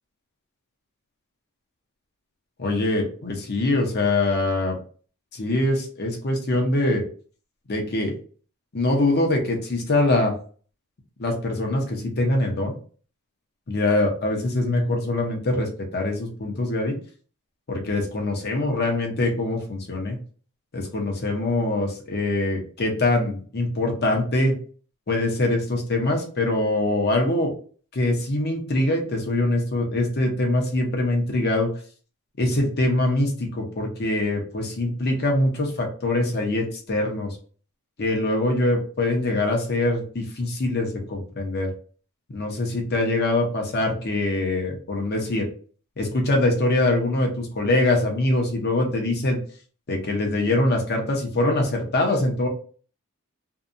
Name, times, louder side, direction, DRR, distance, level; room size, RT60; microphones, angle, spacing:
voice 1, 2.6-4.8 5.3-7.0 7.7-8.1 8.7-10.3 11.2-12.7 13.7-17.0 17.7-20.2 20.7-24.5 25.1-27.5 27.9-31.7 32.4-37.4 38.0-41.7 42.3-45.5 46.0-49.4 49.9-52.5, left 2 dB, 45° left, 1 dB, 0.7 m, -23 dB
2.7 x 2.2 x 2.5 m, 0.42 s
head